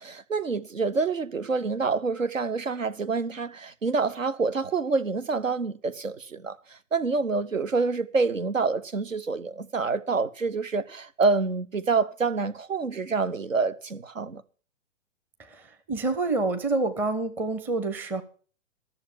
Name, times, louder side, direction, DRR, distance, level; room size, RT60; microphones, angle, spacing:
voice 1, 0.0-14.4, right 4 dB, 90° right, 0.9 m, -27 dB
voice 2, 15.9-18.2, right 3 dB, 5° right, 0.5 m, -27 dB
13.0 x 6.8 x 7.2 m
figure-of-eight pair, 120°, 38 cm